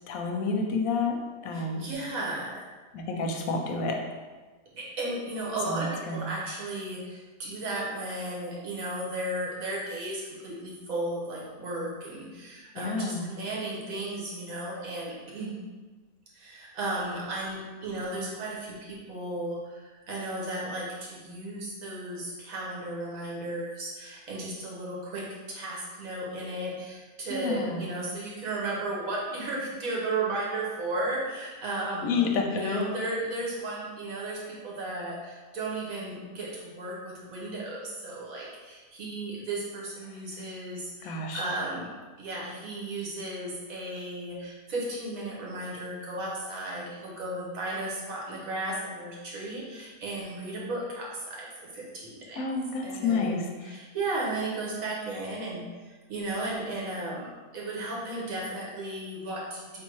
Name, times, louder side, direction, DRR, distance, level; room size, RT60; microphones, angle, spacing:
voice 1, 0.1-1.9 2.9-4.1 5.7-6.3 12.7-13.2 27.3-27.8 32.0-32.9 40.3-40.4 41.0-41.5 52.4-53.7, left 4 dB, 90° left, 3 dB, 1.1 m, -29 dB
voice 2, 1.5-2.6 4.7-15.6 16.3-32.2 32.5-41.9 42.2-51.5 51.7-52.4 52.8-57.3 57.5-59.8, right 2 dB, 75° right, -4 dB, 1.5 m, -35 dB
3.4 x 2.6 x 4.6 m, 1.3 s
omnidirectional pair, 1.4 m